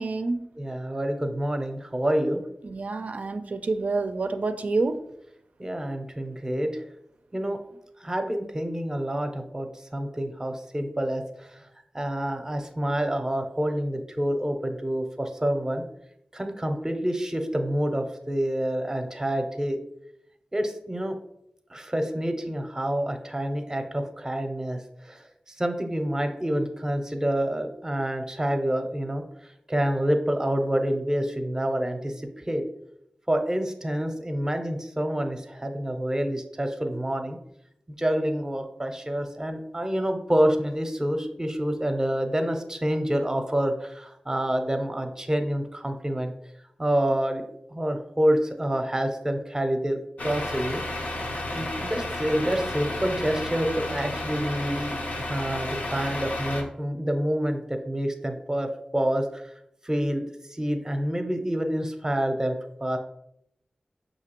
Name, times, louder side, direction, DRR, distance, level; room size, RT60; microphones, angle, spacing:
voice 1, 0.0-0.5 2.6-5.0, right 3 dB, 70° right, 9 dB, 0.4 m, -28 dB
voice 2, 0.6-2.4 5.6-6.8 7.3-7.6 8.0-9.7 9.9-11.6 11.9-15.8 16.3-19.8 20.5-21.1 21.7-24.8 25.0-25.2 25.6-29.2 29.7-32.6 33.3-37.4 37.9-46.3 46.8-47.4 47.7-50.8 51.5-59.5 59.8-60.2 60.5-63.0, right 1 dB, 20° right, 6 dB, 0.6 m, -27 dB
Truck, 50.2-56.6, left 1 dB, 85° left, 0.7 m, -32 dB
5.8 x 2.7 x 2.9 m, 0.77 s
wide cardioid pair, 60°, 3 cm